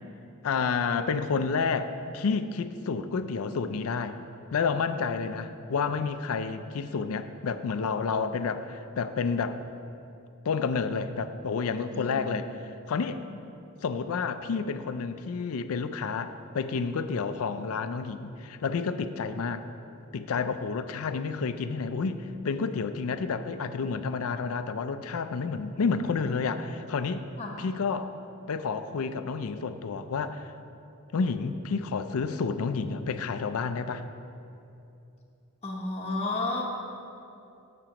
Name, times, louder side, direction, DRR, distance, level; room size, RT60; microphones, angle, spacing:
voice 1, 0.4-4.2 4.5-9.6 10.4-13.2 13.8-19.7 20.1-27.3 27.6-28.1 28.5-30.5 31.1-34.1, left 5 dB, 70° left, 10 dB, 0.4 m, -30 dB
voice 2, 11.9-12.2 27.4-27.7 35.6-36.6, left 2 dB, 30° left, -2 dB, 0.8 m, -32 dB
14.5 x 6.1 x 2.9 m, 2.7 s
head